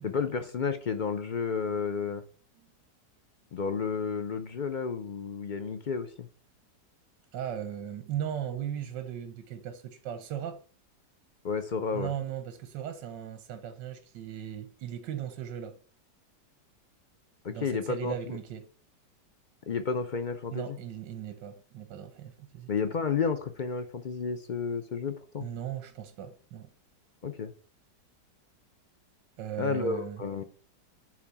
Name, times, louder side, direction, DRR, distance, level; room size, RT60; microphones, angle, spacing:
voice 1, 0.0-2.2 3.5-6.3 11.4-12.1 17.4-18.4 19.7-20.8 22.7-25.5 27.2-27.5 29.6-30.4, left 5 dB, 90° left, 0.4 m, -31 dB
voice 2, 7.3-10.6 11.9-15.8 17.5-18.7 20.5-22.7 25.4-26.7 29.4-30.4, right 10 dB, 80° right, 1.5 m, -37 dB
9.3 x 3.8 x 6.9 m
omnidirectional pair, 1.9 m